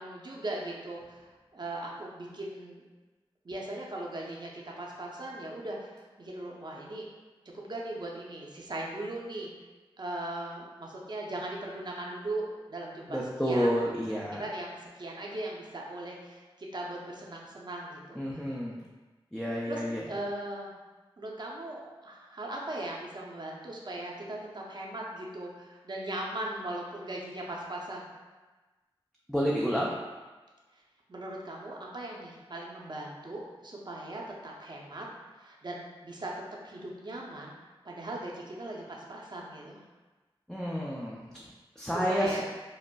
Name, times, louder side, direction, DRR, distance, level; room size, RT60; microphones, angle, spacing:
voice 1, 0.0-2.8 3.4-7.1 7.5-9.5 10.0-13.8 14.1-18.5 19.7-20.7 21.2-28.1 31.1-35.1 35.3-36.3 36.6-37.6 37.8-39.8 41.9-42.4, right 1 dB, 45° right, -2 dB, 0.6 m, -39 dB
voice 2, 13.1-14.4 18.2-18.8 19.3-20.0 29.3-29.9 40.5-41.5 41.8-42.4, equal, 5° left, -4 dB, 0.4 m, -30 dB
5.0 x 2.0 x 2.2 m, 1.2 s
cardioid pair, 50°, 10 cm